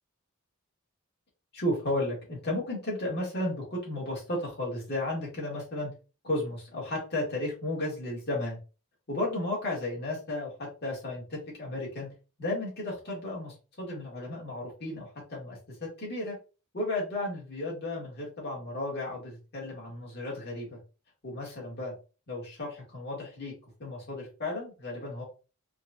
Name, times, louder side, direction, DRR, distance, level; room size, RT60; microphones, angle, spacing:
voice 1, 1.5-5.9 6.2-8.6 9.1-12.1 12.4-16.4 16.7-20.8 21.2-21.9 22.3-23.5 23.8-25.2, left 1 dB, 50° left, -4 dB, 2.0 m, -34 dB
4.7 x 2.4 x 2.6 m, 0.33 s
head